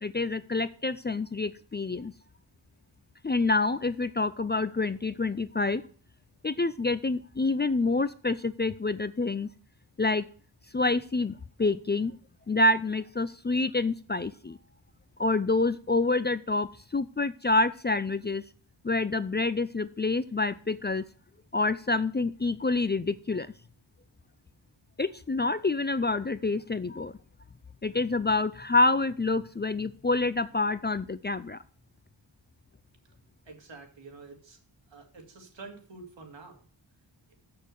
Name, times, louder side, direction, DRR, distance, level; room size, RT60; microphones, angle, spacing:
voice 1, 0.0-2.1 3.2-5.8 6.4-9.5 10.0-10.2 10.7-12.1 12.5-14.6 15.2-18.4 18.8-21.0 21.5-23.5 25.0-27.1 27.8-31.6, left 3 dB, 25° left, 14 dB, 0.4 m, -27 dB
voice 2, 33.5-34.6 34.9-36.7, right 3 dB, 80° right, 2 dB, 2.6 m, -48 dB
8.1 x 6.7 x 6.8 m, 0.43 s
wide cardioid pair, 110°, 44 cm